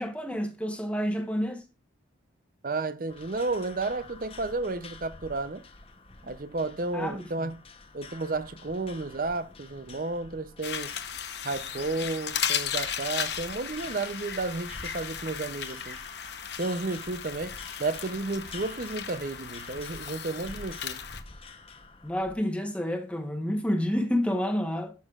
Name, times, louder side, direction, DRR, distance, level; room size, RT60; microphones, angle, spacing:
voice 1, 0.0-1.6 6.9-7.3 22.0-24.9, equal, 5° left, 1.0 m, -29 dB
voice 2, 2.6-5.6 6.2-7.6 7.9-11.0 11.4-16.0 16.6-21.0, right 3 dB, 45° right, 0.6 m, -32 dB
sound 1, 3.1-22.4, left 3 dB, 30° left, 0.8 m, -48 dB
sound 2, 10.6-21.2, left 8 dB, 60° left, 0.9 m, -36 dB
12.5 x 6.4 x 2.4 m
head